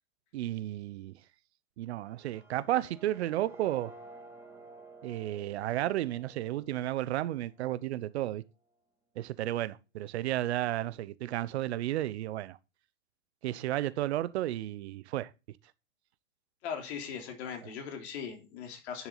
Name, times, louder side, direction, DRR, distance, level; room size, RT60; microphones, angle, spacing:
voice 1, 0.3-1.1 1.8-3.9 5.0-8.4 9.2-12.6 13.4-15.3, right 14 dB, 55° right, 1.0 m, -33 dB
sound 1, 2.0-8.0, right 3 dB, 5° right, 2.5 m, -53 dB
voice 2, 16.6-19.1, left 7 dB, 55° left, 3.6 m, -39 dB
10.5 x 7.2 x 4.0 m
hypercardioid pair, 125°, 39 cm